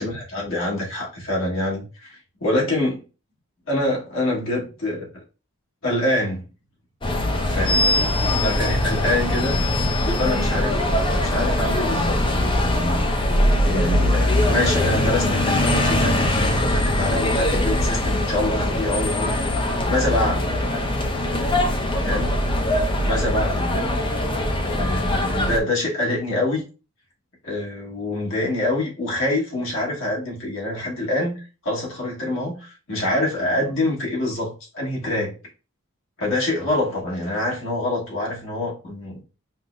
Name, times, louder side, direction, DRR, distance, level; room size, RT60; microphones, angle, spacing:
voice 1, 0.0-3.0 3.7-5.2 5.8-6.4 7.5-8.0 8.4-9.6 10.0-10.8 11.0-19.5 19.9-20.5 22.0-22.3 23.0-23.9 24.6-26.6 27.4-35.3 36.2-39.2, left 1 dB, 60° left, -3 dB, 1.3 m, -26 dB
sound 1, 7.0-25.6, left 1 dB, 20° left, 0.5 m, -21 dB
5.2 x 2.0 x 2.4 m, 0.34 s
head